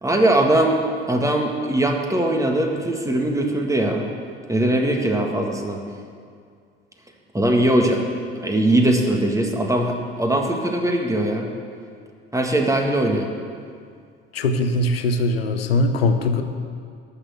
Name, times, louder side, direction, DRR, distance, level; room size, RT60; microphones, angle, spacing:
voice 1, 0.0-0.8 1.1-4.1 4.5-5.8 7.3-8.0 8.4-11.5 12.3-13.3, right 1 dB, 10° right, 2 dB, 1.8 m, -20 dB
voice 2, 14.3-16.4, left 2 dB, 80° left, 7 dB, 0.9 m, -21 dB
12.5 x 6.6 x 7.8 m, 2.2 s
figure-of-eight pair, 60°, 30 cm